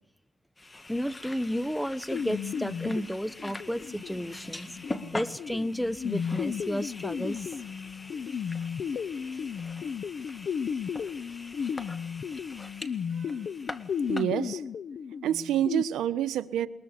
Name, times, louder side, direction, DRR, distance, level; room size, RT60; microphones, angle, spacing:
sound 1, 0.6-14.3, left 2 dB, 20° left, 1.8 m, -43 dB
voice 1, 0.9-4.7 5.1-7.5, equal, ahead, 19 dB, 0.8 m, -32 dB
sound 2, 2.1-15.8, left 7 dB, 55° left, 0.8 m, -34 dB
voice 2, 14.1-14.6 15.2-16.7, right 11 dB, 80° right, 11 dB, 1.2 m, -28 dB
22.0 x 21.5 x 8.1 m, 0.85 s
cardioid pair, 90°, 0 cm